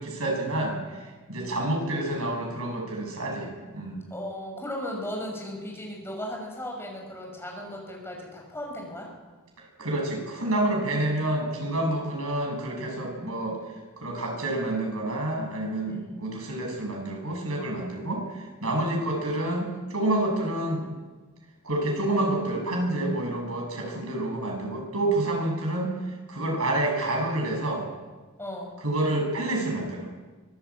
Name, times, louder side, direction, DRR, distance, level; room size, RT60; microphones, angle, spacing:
voice 1, 0.0-4.1 9.8-13.6 14.0-20.8 21.6-26.0 26.3-27.8 28.8-30.1, right 1 dB, 70° right, 1 dB, 7.4 m, -28 dB
voice 2, 4.1-9.1 13.2-13.3 15.8-16.3 18.7-19.0 23.8-24.0 28.4-28.7, left 1 dB, 10° left, 0 dB, 6.3 m, -37 dB
24.0 x 16.0 x 8.6 m, 1.3 s
head